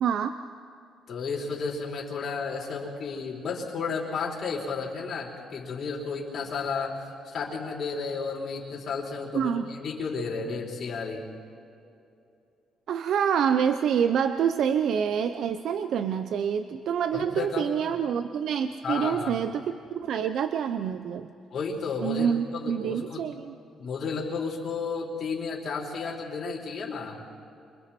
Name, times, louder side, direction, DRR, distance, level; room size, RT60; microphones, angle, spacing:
voice 1, 0.0-0.4 9.3-9.7 12.9-21.3 22.0-23.5, right 8 dB, 70° right, 9 dB, 0.7 m, -27 dB
voice 2, 1.1-11.2 17.1-17.7 18.8-19.4 21.5-23.3 23.8-27.2, left 4 dB, 55° left, -3 dB, 4.8 m, -32 dB
28.5 x 25.0 x 4.5 m, 2.6 s
cardioid pair, 90°, 0 cm